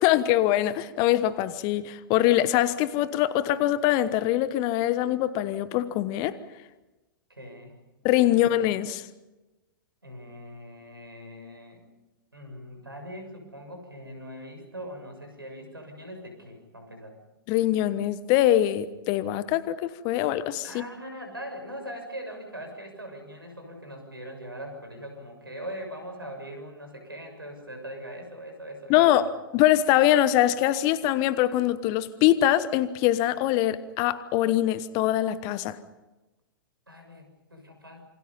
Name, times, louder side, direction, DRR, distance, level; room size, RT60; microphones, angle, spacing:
voice 1, 0.0-6.4 8.0-9.0 17.5-20.8 28.9-29.3 29.5-35.8, left 13 dB, 35° left, 15 dB, 1.2 m, -23 dB
voice 2, 7.3-7.8 8.3-8.5 10.0-11.8 12.3-17.1 20.6-29.2 36.9-38.0, equal, 80° right, 5 dB, 6.9 m, -41 dB
27.5 x 25.0 x 5.6 m, 1.1 s
figure-of-eight pair, 105°, 12 cm